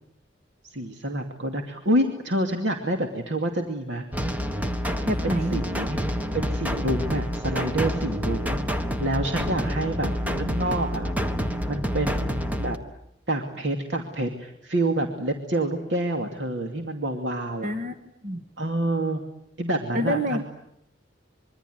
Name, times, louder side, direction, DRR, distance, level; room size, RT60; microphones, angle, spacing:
voice 1, 0.6-4.1 4.8-6.0 6.3-8.6 9.0-10.1 10.4-11.1 11.7-12.8 13.3-17.7 18.6-19.2 19.6-20.5, right 1 dB, 75° right, 3 dB, 2.6 m, -28 dB
sound 1, 4.1-12.8, equal, 10° right, 1.5 m, -28 dB
voice 2, 5.1-5.6 10.2-10.6 17.6-18.0 18.2-18.4 19.9-20.5, equal, 50° right, 7 dB, 1.6 m, -27 dB
25.5 x 24.0 x 9.5 m, 0.75 s
head